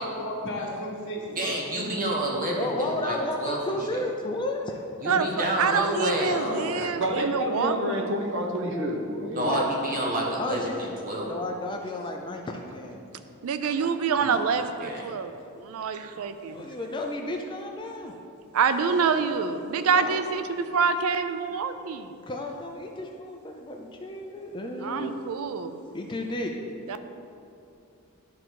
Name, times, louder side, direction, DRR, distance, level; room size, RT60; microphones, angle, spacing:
voice 1, 0.0-1.6 6.3-6.8 18.8-19.3, left 1 dB, 55° left, -3 dB, 1.5 m, -34 dB
voice 2, 1.4-4.0 5.0-6.7 9.3-11.3 14.2-14.4 14.8-15.1, right 1 dB, 40° right, -2 dB, 1.3 m, -29 dB
voice 3, 2.5-4.8 9.4-9.6 10.4-10.9 11.2-13.0 16.5-18.1 19.9-20.2 22.3-25.2 25.9-26.5, left 1 dB, 20° left, 2 dB, 0.4 m, -32 dB
voice 4, 5.1-7.8 13.4-15.3 15.6-16.7 18.5-22.2 24.8-25.8 26.9-27.0, right 5 dB, 75° right, 10 dB, 0.4 m, -26 dB
voice 5, 6.7-9.7 13.6-13.9, equal, 60° right, 1 dB, 0.9 m, -29 dB
11.5 x 3.8 x 4.6 m, 2.7 s
head